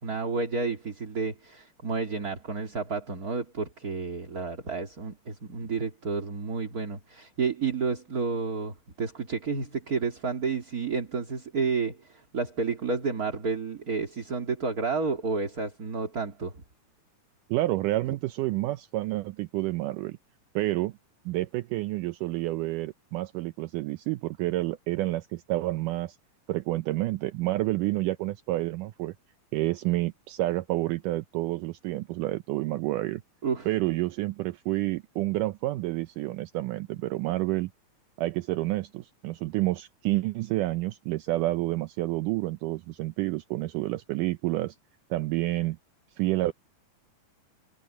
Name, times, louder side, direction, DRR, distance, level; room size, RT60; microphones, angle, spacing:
voice 1, 0.0-16.5 33.4-33.7, right 4 dB, 30° right, 2.5 m, -31 dB
voice 2, 17.5-20.2 20.6-21.0 21.3-26.2 26.5-29.1 29.5-33.2 33.7-37.7 38.2-44.8 45.1-45.8 46.2-46.5, right 18 dB, 80° right, 2.1 m, -29 dB
omnidirectional pair, 3.9 m